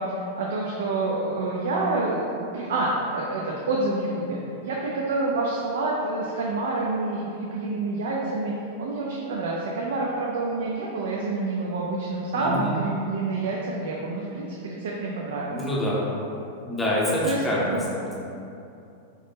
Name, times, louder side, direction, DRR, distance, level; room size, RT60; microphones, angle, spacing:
voice 1, 0.0-8.5 8.8-15.6 17.2-17.9, right 2 dB, 80° right, -3 dB, 0.4 m, -28 dB
voice 2, 12.4-12.7 15.5-16.0 16.7-18.2, left 1 dB, 10° left, -6 dB, 0.6 m, -26 dB
3.6 x 2.1 x 3.8 m, 2.7 s
supercardioid pair, 165°, 0 cm